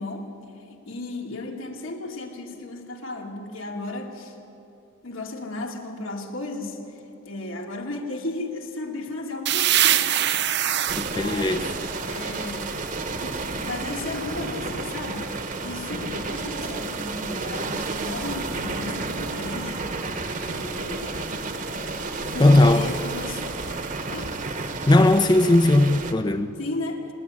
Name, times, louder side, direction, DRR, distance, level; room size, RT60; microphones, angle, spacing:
voice 1, 0.0-4.4 5.0-11.7 12.1-12.8 13.2-15.3 15.6-19.9 20.4-21.3 22.2-23.6 24.1-24.4 26.6-27.1, left 2 dB, 85° left, 2.5 m, -35 dB
sound 1, 9.5-13.1, right 11 dB, 55° right, 0.6 m, -25 dB
sound 2, 10.9-26.1, right 3 dB, 40° right, 1.2 m, -31 dB
voice 2, 11.0-11.7 22.4-22.9 24.9-26.5, left 2 dB, 20° left, 0.5 m, -18 dB
28.0 x 9.8 x 9.9 m
head